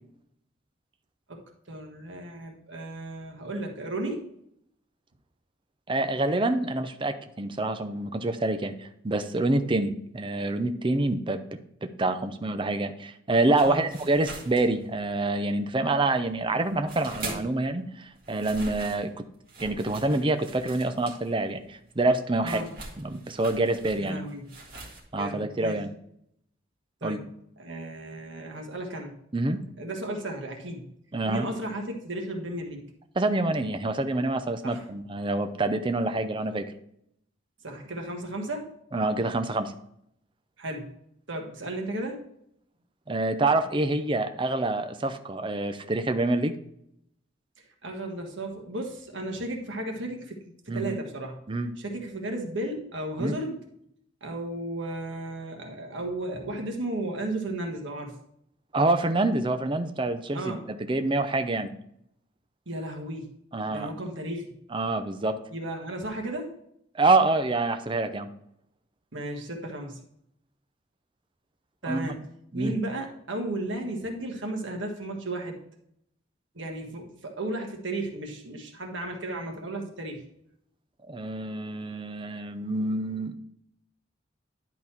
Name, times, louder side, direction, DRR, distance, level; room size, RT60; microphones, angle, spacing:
voice 1, 1.7-4.3 13.6-13.8 16.4-16.6 22.4-22.7 24.0-24.5 25.1-25.8 27.0-27.3 27.6-29.1 29.8-30.9 31.3-32.8 34.6-34.8 37.6-38.7 40.6-40.9 41.3-42.2 47.8-51.4 51.8-53.6 54.2-58.1 60.3-60.6 61.6-61.7 62.7-63.3 63.7-64.5 65.5-66.5 69.1-70.0 71.8-72.2 72.5-75.6 76.5-80.2, right 1 dB, 85° right, 2 dB, 1.5 m, -34 dB
voice 2, 5.9-11.4 11.8-19.2 19.6-22.6 23.0-24.2 25.1-25.9 27.0-27.2 29.3-29.6 31.1-31.5 33.2-36.7 38.9-39.7 43.1-46.6 50.7-51.0 51.5-51.7 53.2-53.4 58.7-61.7 63.5-63.9 64.7-65.4 66.9-68.3 71.9-72.2 72.5-72.8 81.1-83.4, right 2 dB, 25° right, 8 dB, 0.6 m, -27 dB
sound 1, 13.6-15.3 15.6-17.7 18.0-25.0, right 2 dB, 55° right, 1.9 m, -42 dB
10.5 x 4.1 x 4.4 m, 0.73 s
head